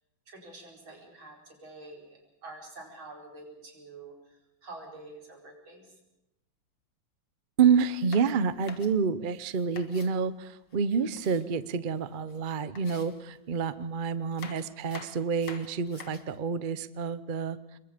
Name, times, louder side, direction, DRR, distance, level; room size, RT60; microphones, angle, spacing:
voice 1, 0.3-6.0, right 2 dB, 85° right, 0 dB, 5.4 m, -47 dB
voice 2, 7.6-17.6, right 6 dB, 65° right, 14 dB, 0.4 m, -28 dB
sound 1, 7.8-10.1 10.7-12.0 12.3-12.4 12.8-13.7 14.2-16.4, left 6 dB, 75° left, 2.4 m, -48 dB
27.0 x 22.0 x 5.1 m, 0.93 s
omnidirectional pair, 2.1 m